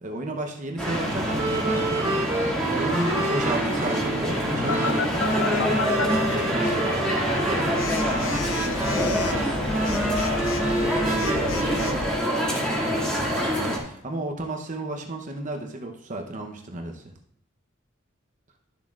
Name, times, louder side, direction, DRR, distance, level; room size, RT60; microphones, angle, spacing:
voice 1, 0.0-2.2 2.7-7.5 13.6-17.0, right 2 dB, 40° right, 3 dB, 0.9 m, -33 dB
sound 1, 0.8-13.8, equal, 5° left, 2.0 m, -26 dB
sound 2, 1.2-12.0, right 1 dB, 10° right, 2.1 m, -28 dB
Telephone, 4.7-6.1 7.8-12.1, left 5 dB, 80° left, 0.7 m, -32 dB
voice 2, 8.7-13.1, equal, 20° left, -2 dB, 1.9 m, -37 dB
12.0 x 7.2 x 2.5 m, 0.69 s
head